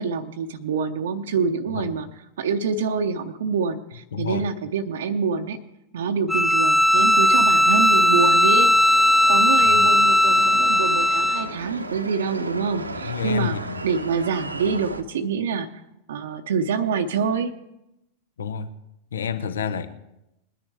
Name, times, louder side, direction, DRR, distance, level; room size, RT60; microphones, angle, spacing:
voice 1, 0.0-2.1 2.4-5.6 5.9-13.6 13.8-15.7 16.1-17.5, right 5 dB, 60° right, 5 dB, 0.8 m, -26 dB
voice 2, 4.1-4.5 9.6-9.9 13.0-13.9 18.4-18.7 19.1-19.9, left 7 dB, 65° left, 11 dB, 0.9 m, -29 dB
Bowed string instrument, 6.3-11.5, left 1 dB, 5° left, 0.7 m, -17 dB
sound 1, 7.0-15.0, right 2 dB, 80° right, 0.9 m, -35 dB
21.0 x 10.0 x 3.4 m, 0.88 s
figure-of-eight pair, 90°, 0 cm